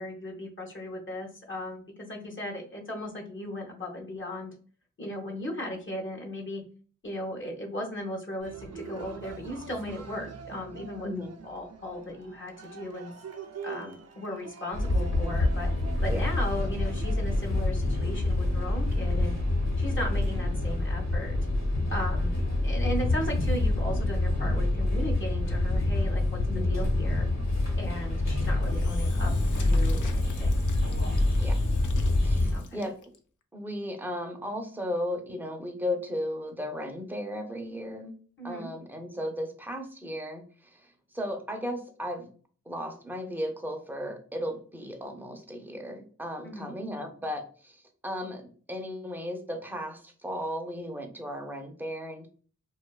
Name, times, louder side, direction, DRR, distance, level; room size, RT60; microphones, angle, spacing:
voice 1, 0.0-4.5 5.0-6.6 7.0-11.1 11.4-13.1 13.6-15.7 16.0-19.4 19.8-21.4 21.9-27.3 27.8-30.5 32.5-32.6 38.4-38.7 46.4-46.7, left 1 dB, 40° left, 0 dB, 0.7 m, -37 dB
Cheering, 8.4-20.4, right 6 dB, 55° right, 0.5 m, -46 dB
voice 2, 11.0-11.4 16.0-16.2 26.5-26.8 31.4-31.6 32.2-32.9 33.5-38.2 38.4-42.3 42.7-52.3, equal, 5° right, 3 dB, 0.5 m, -35 dB
sound 1, 14.7-32.5, left 2 dB, 60° left, 1.1 m, -26 dB
Engine / Drill, 28.6-33.2, left 3 dB, 75° left, 0.5 m, -41 dB
2.6 x 2.2 x 2.2 m, 0.42 s
cardioid pair, 60°, 30 cm